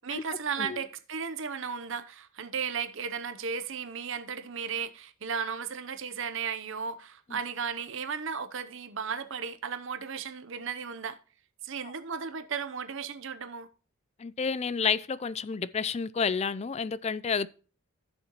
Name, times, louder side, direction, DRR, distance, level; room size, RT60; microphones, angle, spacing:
voice 1, 0.0-11.2 11.6-13.7, right 6 dB, 60° right, 0.8 m, -35 dB
voice 2, 14.2-17.5, left 6 dB, 30° left, 0.4 m, -30 dB
15.0 x 6.6 x 3.0 m
head